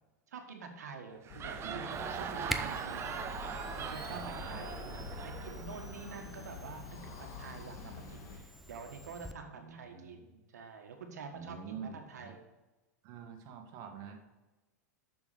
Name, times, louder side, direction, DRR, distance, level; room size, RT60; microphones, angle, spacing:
voice 1, 0.3-3.1 3.8-12.4, right 5 dB, 80° right, 4 dB, 1.6 m, -47 dB
sound 1, 1.1-6.7, right 7 dB, 30° right, 0.8 m, -41 dB
sound 2, 1.3-8.5, left 5 dB, 45° left, 1.8 m, -47 dB
Camera, 1.9-9.3, equal, ahead, 0.6 m, -46 dB
voice 2, 2.4-2.8 4.1-5.3 7.5-8.2 9.4-10.2 11.3-12.3 13.0-14.2, right 6 dB, 50° right, 5 dB, 1.7 m, -48 dB
7.1 x 6.3 x 6.9 m, 1.1 s
hypercardioid pair, 110°, 9 cm